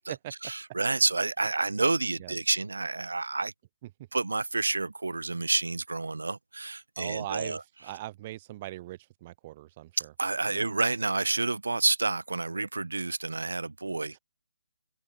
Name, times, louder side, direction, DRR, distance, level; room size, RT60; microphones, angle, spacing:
voice 1, 0.4-3.5 4.1-7.6 10.2-14.2, right 3 dB, 85° right, 0.7 m, -29 dB
voice 2, 7.0-10.1 10.5-10.7, right 16 dB, 30° right, 1.6 m, -40 dB
figure-of-eight pair, 150°, 0 cm